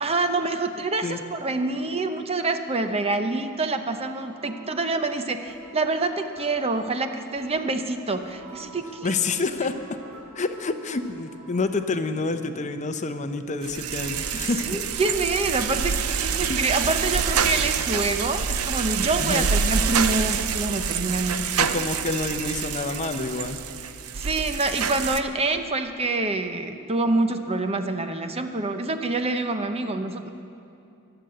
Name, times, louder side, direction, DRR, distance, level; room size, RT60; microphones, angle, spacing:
voice 1, 0.0-9.1 14.3-21.5 24.1-30.3, right 3 dB, 30° right, 7 dB, 0.8 m, -26 dB
sound 1, 4.4-11.8, right 3 dB, 70° right, 3.6 m, -48 dB
voice 2, 9.0-9.7 10.3-14.8 16.5-16.6 19.2-19.5 21.6-23.6, left 3 dB, 35° left, 8 dB, 0.7 m, -28 dB
sound 2, 13.6-25.2, right 6 dB, 85° right, 0.7 m, -26 dB
23.5 x 7.9 x 7.8 m, 2.6 s
head